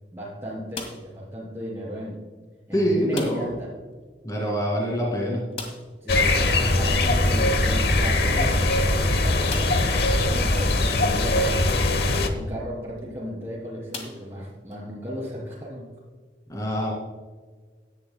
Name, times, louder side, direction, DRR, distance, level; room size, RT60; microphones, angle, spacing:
voice 1, 0.1-2.2 2.7-3.7 6.0-11.6 12.0-15.9, equal, 15° right, -6 dB, 3.1 m, -35 dB
sound 1, 0.7-1.3 3.1-3.7 3.9-4.0 4.3-4.4 5.5-6.1 7.8-7.9 8.6-8.7 9.5-10.0 10.7-10.8 12.8-13.0 13.9-14.8, left 3 dB, 35° left, 1.8 m, -38 dB
voice 2, 2.7-3.5 4.2-5.4 16.5-16.9, equal, 20° left, -1 dB, 2.3 m, -25 dB
sound 2, 6.1-12.3, left 2 dB, 60° left, 1.0 m, -21 dB
16.5 x 11.0 x 2.2 m, 1.5 s
head